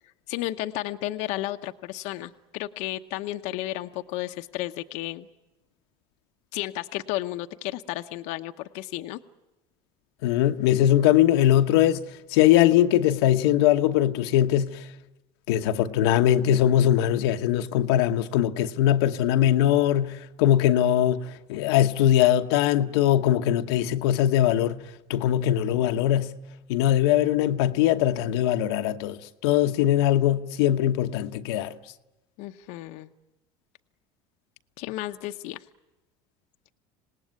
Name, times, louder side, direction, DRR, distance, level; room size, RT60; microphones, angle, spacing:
voice 1, 0.3-5.3 6.5-9.2 32.4-33.1 34.8-35.6, left 16 dB, 65° left, 0.9 m, -33 dB
voice 2, 10.2-12.0 12.3-14.8 15.5-24.8 25.1-26.4 26.7-31.8, left 12 dB, 90° left, 1.1 m, -21 dB
26.5 x 19.0 x 9.5 m
cardioid pair, 135°, 13 cm